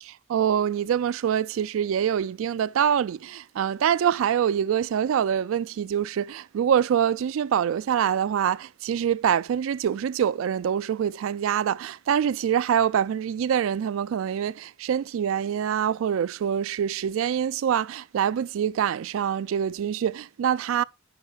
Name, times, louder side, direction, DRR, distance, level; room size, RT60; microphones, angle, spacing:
voice 1, 0.0-20.8, right 8 dB, 70° right, 0.3 m, -25 dB
9.4 x 5.8 x 2.3 m
head